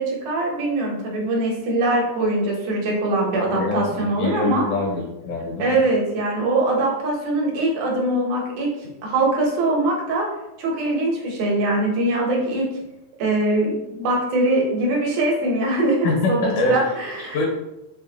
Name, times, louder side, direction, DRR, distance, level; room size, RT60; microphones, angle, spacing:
voice 1, 0.0-4.7 5.6-8.7 9.0-10.3 10.6-12.7 13.2-17.4, right 2 dB, 80° right, -1 dB, 2.4 m, -22 dB
voice 2, 3.5-5.8 16.0-16.8 17.3-17.5, left 3 dB, 85° left, -1 dB, 2.5 m, -24 dB
5.5 x 2.6 x 2.7 m, 0.91 s
omnidirectional pair, 3.4 m